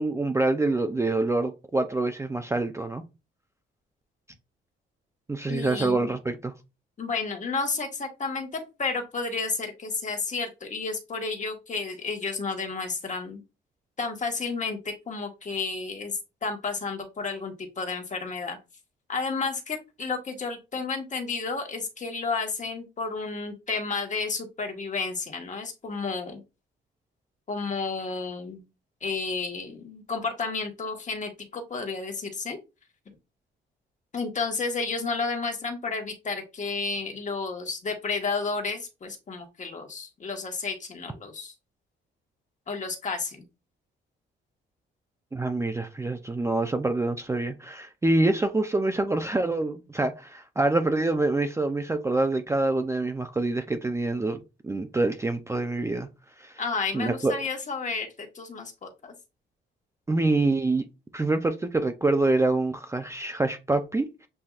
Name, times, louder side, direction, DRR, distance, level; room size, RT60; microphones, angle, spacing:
voice 1, 0.0-3.0 5.3-6.5 45.3-56.1 56.4-56.5 56.9-57.4 60.1-60.8 61.1-64.1, right 2 dB, 15° right, 0.5 m, -26 dB
voice 2, 5.5-6.1 7.0-13.4 14.0-18.6 19.1-26.4 27.5-28.6 29.0-32.6 34.1-41.5 42.7-43.4 56.6-58.1 58.3-59.1, left 4 dB, 40° left, 1.4 m, -31 dB
7.6 x 2.6 x 2.4 m
cardioid pair, 90°, 20 cm